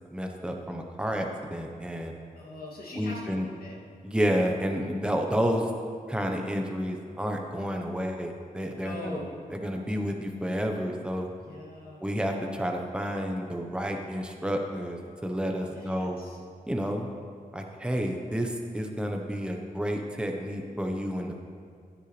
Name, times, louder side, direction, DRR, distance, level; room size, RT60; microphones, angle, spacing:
voice 1, 0.1-2.1 2.9-3.5 4.0-5.6 6.1-9.2 9.5-11.3 12.0-16.2 16.7-17.1 17.5-21.4, equal, 5° right, 2 dB, 1.0 m, -30 dB
voice 2, 2.4-3.7 8.8-9.3 11.4-12.0 15.7-16.4, left 1 dB, 85° left, -4 dB, 2.6 m, -41 dB
15.5 x 10.0 x 3.3 m, 2.2 s
wide cardioid pair, 115°, 15 cm